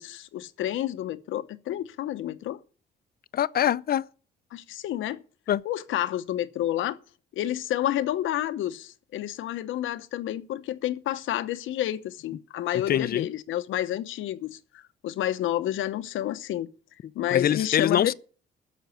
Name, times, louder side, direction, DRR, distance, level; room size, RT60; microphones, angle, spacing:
voice 1, 0.0-2.6 4.5-5.2 5.6-7.0 7.3-16.7 17.1-18.1, left 12 dB, 80° left, 0.9 m, -30 dB
voice 2, 3.3-4.0 5.5-5.6 12.9-13.3 17.3-18.1, left 10 dB, 50° left, 0.5 m, -24 dB
11.5 x 6.7 x 9.1 m
cardioid pair, 90°, 20 cm